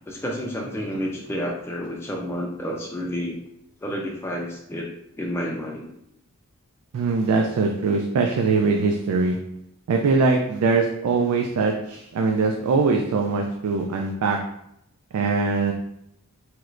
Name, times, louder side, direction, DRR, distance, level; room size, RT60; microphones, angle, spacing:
voice 1, 0.1-3.4 3.8-4.9 5.2-5.9, equal, 10° left, -2 dB, 0.3 m, -30 dB
voice 2, 6.9-9.4 9.9-14.4 15.1-15.7, right 4 dB, 80° right, 2 dB, 0.3 m, -22 dB
3.1 x 3.0 x 2.4 m, 0.77 s
head